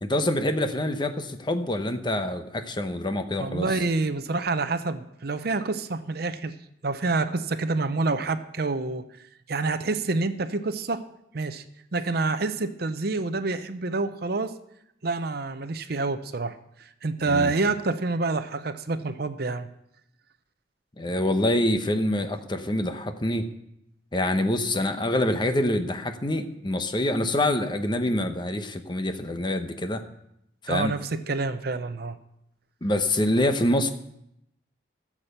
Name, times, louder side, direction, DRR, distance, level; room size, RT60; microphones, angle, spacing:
voice 1, 0.0-3.7 17.2-17.5 21.0-23.5 24.1-30.0 30.6-30.9 32.8-33.9, left 1 dB, 25° left, 7 dB, 0.9 m, -26 dB
voice 2, 3.4-6.5 6.8-9.0 9.5-11.0 11.3-11.6 11.9-14.5 15.0-16.6 17.0-19.7 30.7-32.2, right 3 dB, 55° right, 11 dB, 0.7 m, -27 dB
14.5 x 7.4 x 6.7 m, 0.79 s
head